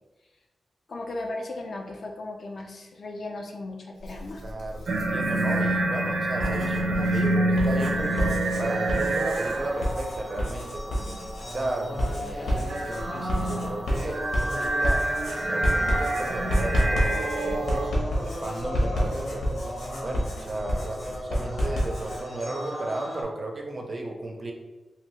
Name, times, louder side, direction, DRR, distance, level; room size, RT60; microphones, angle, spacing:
voice 1, 0.9-4.5, left 2 dB, 50° left, 2 dB, 0.4 m, -36 dB
Writing, 4.0-5.6 6.2-22.2, equal, 85° left, 0.9 m, -30 dB
voice 2, 4.4-8.2 8.6-11.2 11.5-15.0 15.3-17.9 18.2-19.5 20.0-24.5, right 2 dB, 30° right, 2 dB, 0.4 m, -34 dB
sound 1, 4.9-10.0 10.3-11.2 12.7-17.9, right 1 dB, 85° right, 0.5 m, -27 dB
sound 2, 7.9-23.2, equal, 20° left, 0.7 m, -36 dB
2.8 x 2.6 x 3.1 m, 1.2 s
wide cardioid pair, 170°, 0 cm